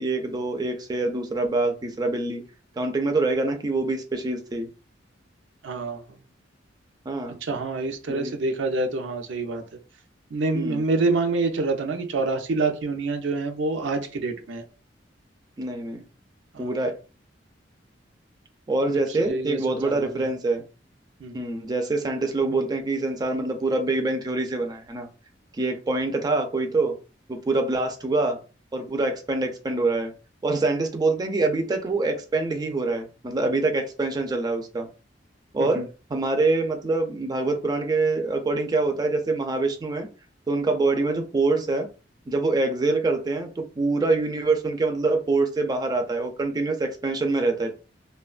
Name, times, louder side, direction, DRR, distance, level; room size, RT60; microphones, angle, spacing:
voice 1, 0.0-2.4 2.8-4.7 7.1-7.4 8.1-8.3 10.5-10.8 15.6-16.0 16.6-17.0 18.7-20.6 21.3-25.1 25.6-27.0 27.3-28.4 28.7-30.1 30.4-34.9 35.5-40.1 40.5-41.9 42.3-47.7, right 3 dB, 20° right, 0.4 m, -25 dB
voice 2, 5.6-6.0 7.4-9.6 10.3-14.6 16.5-16.7 19.2-20.1 21.2-21.4 35.8-35.9, right 3 dB, 85° right, 0.5 m, -26 dB
2.8 x 2.1 x 2.4 m
head